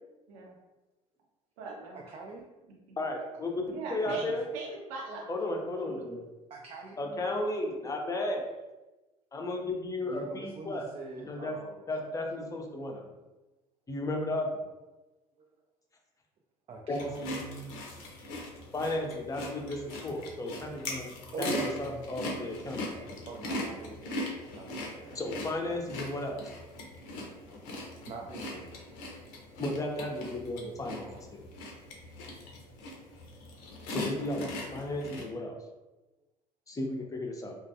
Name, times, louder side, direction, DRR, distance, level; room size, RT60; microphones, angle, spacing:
voice 1, 1.6-2.0 3.7-5.3 5.9-6.1 7.0-7.2, right 4 dB, 70° right, -1 dB, 0.7 m, -41 dB
voice 2, 2.1-2.4 3.5-3.6 4.1-4.4 6.5-7.0 10.1-11.8 15.4-15.5 16.7-17.8 20.6-20.8 21.3-22.2 23.3-24.2 24.5-25.2 28.1-28.7 30.8-31.3, right 3 dB, 35° right, 0 dB, 0.4 m, -43 dB
voice 3, 3.0-4.5 5.3-6.2 7.0-8.4 9.3-10.9 11.3-11.6 11.9-13.1 13.9-14.7 16.9-17.0 18.7-21.1 21.4-23.1 25.1-26.5 29.6-31.4 33.9-35.6 36.7-37.6, left 1 dB, 20° left, 1 dB, 0.5 m, -34 dB
sound 1, 16.9-35.2, left 1 dB, 65° left, 0.6 m, -40 dB
2.2 x 2.2 x 2.7 m, 1.1 s
hypercardioid pair, 65°, 18 cm